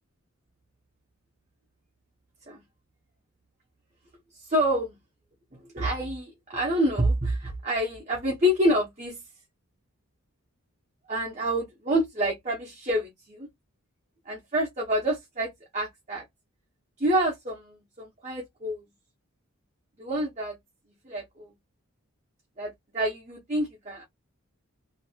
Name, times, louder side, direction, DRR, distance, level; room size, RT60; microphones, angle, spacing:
voice 1, 4.3-5.0 5.7-9.2 11.1-13.5 14.3-16.2 17.0-18.8 20.0-20.6 21.0-21.5 22.6-24.0, equal, 30° right, 1.0 m, -27 dB
2.9 x 2.6 x 2.8 m
head